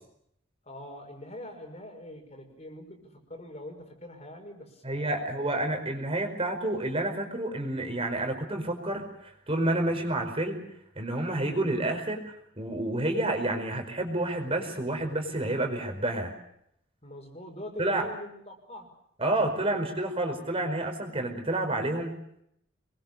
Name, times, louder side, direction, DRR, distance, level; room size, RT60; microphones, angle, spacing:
voice 1, 0.7-5.5 17.0-18.9, left 1 dB, 35° left, 4 dB, 5.8 m, -43 dB
voice 2, 4.8-10.6 10.9-12.2 12.6-16.3 17.8-18.1 19.2-22.1, right 1 dB, 30° right, 4 dB, 4.9 m, -29 dB
27.0 x 22.5 x 6.8 m, 0.73 s
head